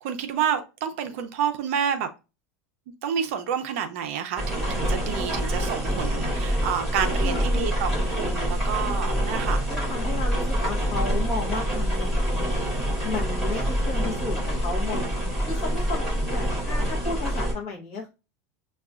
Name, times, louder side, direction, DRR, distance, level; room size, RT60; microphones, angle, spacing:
voice 1, 0.0-2.1 3.0-7.9 8.2-9.6, right 8 dB, 50° right, 0.5 m, -29 dB
Rain on the roof window, 4.4-17.5, equal, ahead, 2.4 m, -26 dB
voice 2, 7.2-7.7 9.7-12.5 13.0-15.1 15.5-16.0 16.3-18.1, left 3 dB, 30° left, 0.9 m, -33 dB
6.6 x 2.3 x 2.4 m
supercardioid pair, 180°, 9 cm